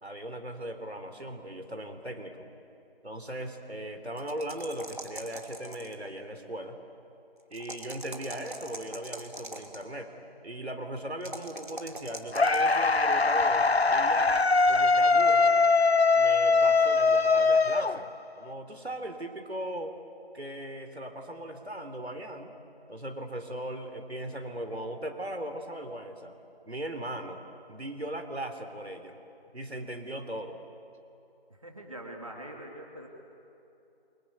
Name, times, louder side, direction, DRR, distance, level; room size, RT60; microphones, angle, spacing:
voice 1, 0.0-2.5 3.0-6.8 7.5-14.3 14.7-15.5 16.1-18.1 18.4-19.9 20.3-22.5 22.9-26.3 26.6-27.4 27.7-29.2 29.5-30.6, right 1 dB, 85° right, 6 dB, 3.6 m, -38 dB
sound 1, 4.2-6.1 7.5-9.8 11.2-12.8, right 1 dB, 50° right, 2.8 m, -42 dB
sound 2, 12.3-18.4, left 4 dB, 80° left, 1.0 m, -22 dB
voice 2, 31.5-33.1, right 1 dB, 30° right, 0 dB, 2.7 m, -43 dB
29.0 x 24.5 x 8.3 m, 2.8 s
figure-of-eight pair, 175°, 31 cm